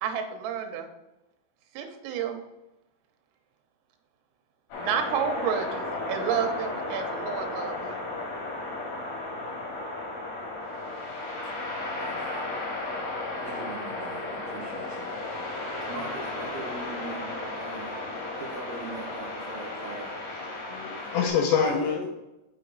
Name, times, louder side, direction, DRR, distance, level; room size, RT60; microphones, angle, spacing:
voice 1, 0.0-0.9 1.8-2.4 4.8-8.0, right 7 dB, 90° right, 5 dB, 3.5 m, -30 dB
sound 1, 4.7-21.3, left 2 dB, 55° left, 2.8 m, -34 dB
voice 2, 12.0-12.4 13.4-15.1 15.8-20.2 21.0-21.1 21.6-22.1, right 3 dB, 70° right, -2 dB, 2.4 m, -41 dB
voice 3, 20.3-22.1, left 6 dB, 80° left, 1 dB, 2.7 m, -26 dB
6.4 x 6.4 x 3.9 m, 0.97 s
omnidirectional pair, 5.7 m